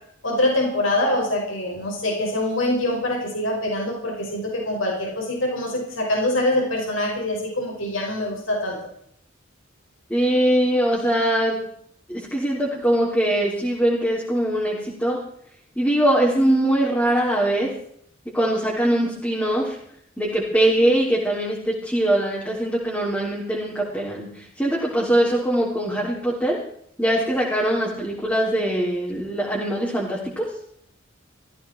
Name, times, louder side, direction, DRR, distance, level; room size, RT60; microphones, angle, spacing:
voice 1, 0.2-8.8, left 1 dB, 80° left, -1 dB, 5.8 m, -24 dB
voice 2, 10.1-11.6 12.1-15.2 15.7-17.7 18.2-19.8 20.2-26.6 27.0-30.5, right 1 dB, 10° left, -5 dB, 3.4 m, -22 dB
17.0 x 15.0 x 4.5 m, 0.66 s
head